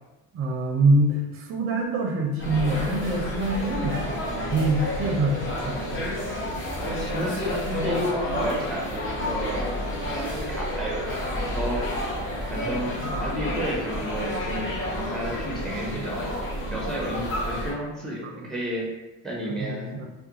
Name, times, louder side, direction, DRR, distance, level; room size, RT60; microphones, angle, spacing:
voice 1, 0.3-6.2 18.2-18.3 19.6-20.1, right 2 dB, 35° right, 2 dB, 0.6 m, -25 dB
sound 1, 2.4-17.7, left 1 dB, 35° left, 0.9 m, -30 dB
voice 2, 6.7-9.8 10.1-11.9 12.5-12.9 13.2-16.4 16.7-18.9 19.2-19.9, equal, ahead, -3 dB, 0.7 m, -32 dB
2.4 x 2.3 x 2.8 m, 1.1 s
supercardioid pair, 90°, 36 cm